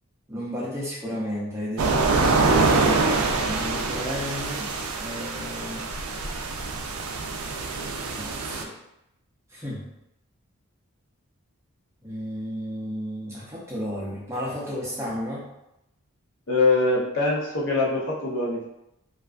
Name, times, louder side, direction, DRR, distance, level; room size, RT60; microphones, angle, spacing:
voice 1, 0.3-2.0 3.4-4.7 5.0-5.9 8.1-8.7 9.5-9.9 12.0-15.5, equal, 10° right, -7 dB, 0.5 m, -33 dB
sound 1, 1.8-8.6, right 3 dB, 75° right, 0.3 m, -25 dB
voice 2, 16.5-18.7, left 3 dB, 60° left, -5 dB, 0.6 m, -23 dB
2.4 x 2.3 x 2.3 m, 0.84 s
head